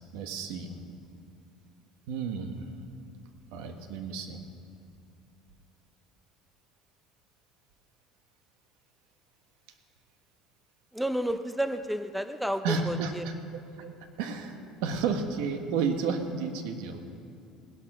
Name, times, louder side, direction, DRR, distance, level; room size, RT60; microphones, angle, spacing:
voice 1, 0.1-0.8 2.1-2.7 3.5-4.4 12.6-13.9 14.2-17.0, right 5 dB, 85° right, 6 dB, 1.4 m, -32 dB
voice 2, 10.9-13.3, equal, ahead, 9 dB, 0.5 m, -31 dB
18.0 x 11.5 x 6.1 m, 2.6 s
cardioid pair, 150°, 0 cm